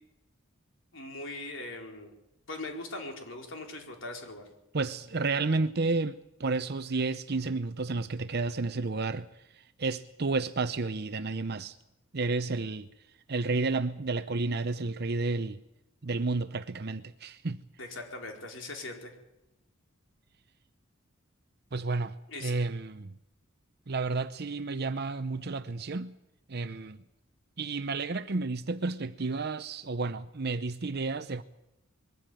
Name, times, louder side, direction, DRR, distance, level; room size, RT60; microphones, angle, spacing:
voice 1, 0.9-2.1 2.5-4.5 17.8-19.1 22.3-22.5, left 2 dB, 65° left, 4.3 m, -40 dB
voice 2, 4.7-9.3 9.5-11.8 12.1-12.9 13.3-15.6 16.0-17.6 21.7-22.1 22.4-23.1 23.9-26.1 26.5-27.0 27.6-31.4, right 3 dB, 55° right, 0.8 m, -31 dB
22.0 x 15.0 x 9.2 m
head